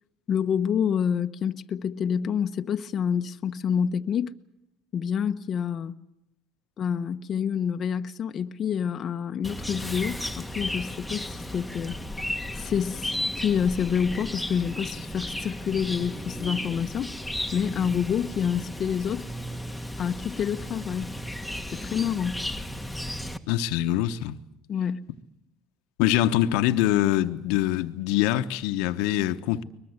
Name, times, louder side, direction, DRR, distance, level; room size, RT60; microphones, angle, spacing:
voice 1, 0.3-4.3 4.9-5.9 6.8-12.0 12.5-17.1 17.5-19.3 20.0-21.1 21.7-22.4 24.7-25.0, left 7 dB, 45° left, 0.9 m, -28 dB
Chirp tweet, 9.4-23.4, left 1 dB, ahead, 1.6 m, -34 dB
voice 2, 23.5-24.4 26.0-29.6, left 13 dB, 80° left, 1.1 m, -24 dB
23.0 x 20.5 x 8.1 m
supercardioid pair, 95°, 0 cm